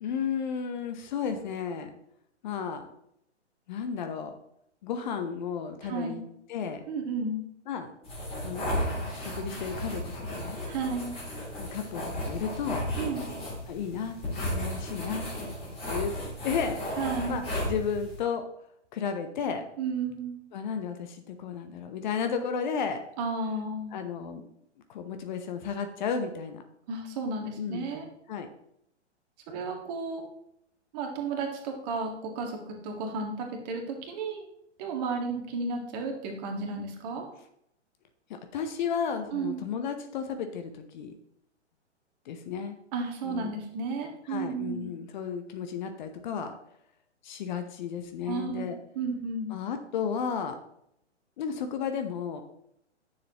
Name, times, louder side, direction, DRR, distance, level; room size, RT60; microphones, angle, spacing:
voice 1, 0.0-1.9 2.4-2.8 3.7-4.3 4.8-6.2 6.5-6.8 7.7-7.9 8.4-10.6 11.6-12.8 13.7-15.3 15.9-16.1 16.4-16.8 17.3-18.4 18.9-19.6 20.5-23.0 23.9-24.4 24.9-26.6 27.6-27.9 28.3-28.5 38.3-41.1 42.3-42.8 43.2-43.6 44.3-46.5 47.2-48.8 49.5-50.6 51.4-52.4, left 6 dB, 40° left, 7 dB, 0.9 m, -33 dB
voice 2, 5.8-6.2 6.9-7.4 10.7-11.2 13.0-13.2 17.0-17.4 19.8-20.4 23.2-24.0 26.9-28.1 29.5-30.3 30.9-34.4 34.8-37.3 39.3-39.6 42.9-44.9 48.3-49.6, right 4 dB, 35° right, 2 dB, 1.7 m, -33 dB
sound 1, 8.0-18.2, equal, 15° left, 3.0 m, -34 dB
10.0 x 6.8 x 3.0 m, 0.74 s
figure-of-eight pair, 115°, 35 cm